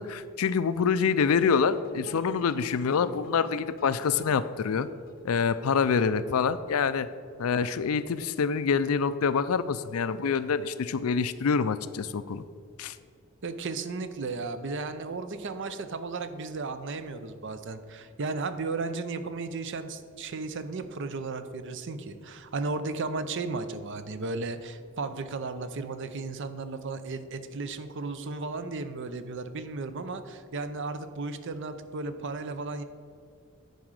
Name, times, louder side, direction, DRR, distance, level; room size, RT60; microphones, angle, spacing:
voice 1, 0.0-4.9 5.2-7.1 7.4-12.4 12.8-13.0, left 6 dB, 90° left, 14 dB, 0.4 m, -26 dB
sound 1, 1.2-6.3, left 3 dB, 45° left, 0.7 m, -51 dB
voice 2, 13.4-32.8, right 3 dB, 60° right, 10 dB, 0.6 m, -34 dB
9.3 x 4.9 x 6.4 m, 2.2 s
head